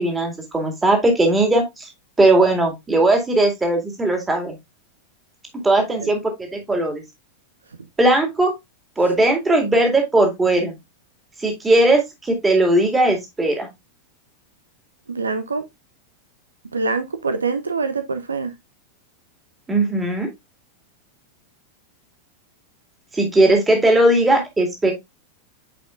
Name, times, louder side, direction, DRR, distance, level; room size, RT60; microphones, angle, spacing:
voice 1, 0.0-1.9 2.2-4.6 5.6-7.0 8.0-8.5 9.0-10.7 11.4-13.7 19.7-20.3 23.1-24.9, right 2 dB, 10° right, 2.3 m, -18 dB
voice 2, 15.1-15.6 16.7-18.5, right 4 dB, 75° right, 0.6 m, -24 dB
8.6 x 5.0 x 2.4 m
figure-of-eight pair, 90°, 0 cm